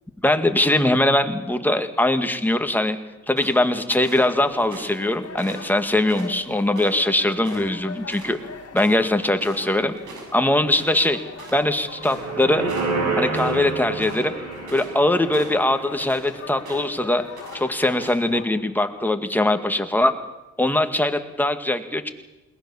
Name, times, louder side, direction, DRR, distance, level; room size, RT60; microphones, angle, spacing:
voice 1, 0.2-3.0 3.3-8.4 8.7-9.9 10.3-11.2 11.5-12.6 13.2-14.3 14.7-17.2 17.5-20.1 20.6-22.1, left 1 dB, 5° left, 7 dB, 2.0 m, -21 dB
sound 1, 3.4-4.3 4.7-5.1 5.4-7.1 7.4-7.8 8.1-8.3 8.6-12.4 12.7-13.6 13.9-15.0 15.3-16.3 16.7-17.0 17.4-17.6 18.0-18.3, right 2 dB, 85° right, 6.6 m, -42 dB
sound 2, 4.2-18.4, left 5 dB, 55° left, 2.6 m, -41 dB
sound 3, 11.9-17.3 17.6-17.7, right 4 dB, 65° right, 6.7 m, -29 dB
21.5 x 19.5 x 7.2 m, 1.0 s
cardioid pair, 85°, 29 cm